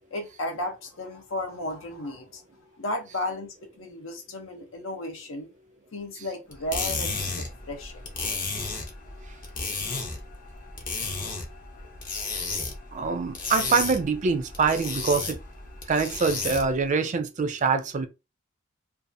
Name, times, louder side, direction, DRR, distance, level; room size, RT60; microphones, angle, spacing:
voice 1, 0.1-2.4 2.8-5.5 5.9-8.0, left 1 dB, 80° left, 0.7 m, -34 dB
sound 1, 6.5-16.8, left 4 dB, 40° left, 0.7 m, -33 dB
voice 2, 12.9-15.4 15.9-18.1, right 4 dB, 40° right, 0.4 m, -24 dB
2.6 x 2.3 x 2.6 m
head